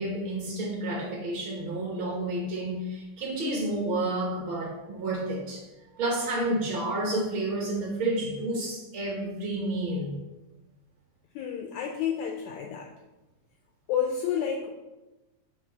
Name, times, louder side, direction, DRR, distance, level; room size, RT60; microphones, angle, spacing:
voice 1, 0.0-5.6 5.9-10.2, right 1 dB, 65° right, -3 dB, 1.2 m, -30 dB
voice 2, 11.3-12.9 13.9-14.7, left 8 dB, 85° left, 2 dB, 1.6 m, -30 dB
6.4 x 3.1 x 5.1 m, 1.0 s
omnidirectional pair, 3.7 m